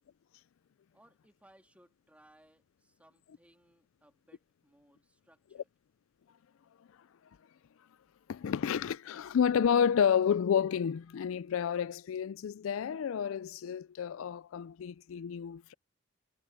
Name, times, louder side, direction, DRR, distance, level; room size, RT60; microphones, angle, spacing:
voice 1, 0.9-5.7, right 1 dB, 5° right, 3.0 m, -64 dB
voice 2, 8.3-15.7, left 7 dB, 75° left, 0.4 m, -30 dB
head